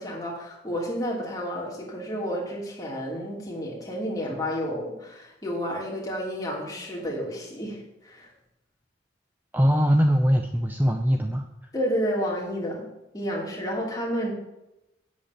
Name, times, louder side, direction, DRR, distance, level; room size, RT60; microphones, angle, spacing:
voice 1, 0.0-8.3 11.7-14.3, equal, 20° left, -2 dB, 2.7 m, -31 dB
voice 2, 9.5-11.5, equal, 10° right, 4 dB, 0.6 m, -21 dB
8.2 x 7.9 x 7.2 m, 0.92 s
head